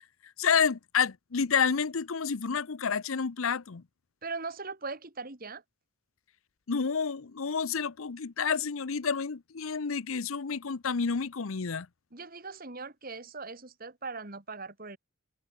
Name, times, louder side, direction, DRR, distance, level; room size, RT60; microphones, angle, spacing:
voice 1, 0.4-3.8 6.7-11.9, left 6 dB, 75° left, 0.7 m, -29 dB
voice 2, 4.2-5.6 12.1-15.0, right 4 dB, 45° right, 2.4 m, -40 dB
open air
head